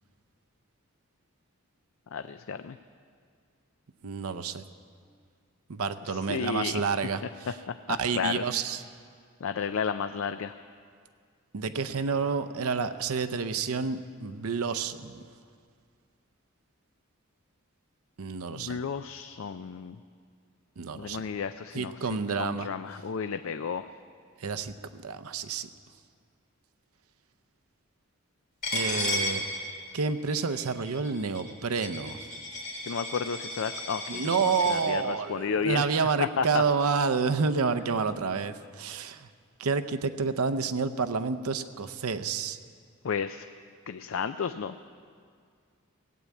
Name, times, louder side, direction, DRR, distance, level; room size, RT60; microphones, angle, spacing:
voice 1, 2.1-2.8 6.1-6.9 7.7-8.4 9.4-10.5 18.5-20.0 20.9-21.9 22.4-23.9 32.9-35.9 36.2-36.6 43.0-43.5 43.9-44.8, left 6 dB, 65° left, 10 dB, 0.4 m, -32 dB
voice 2, 4.0-4.6 5.7-7.5 7.9-8.8 11.5-15.2 18.2-18.8 20.8-21.2 21.7-22.7 24.4-24.7 25.0-25.7 28.7-29.4 29.9-32.2 34.1-39.3 39.6-42.6, right 5 dB, 90° right, 11 dB, 0.7 m, -29 dB
Coin (dropping), 28.6-34.8, left 1 dB, 40° left, 3.6 m, -34 dB
18.0 x 8.6 x 8.4 m, 2.1 s
head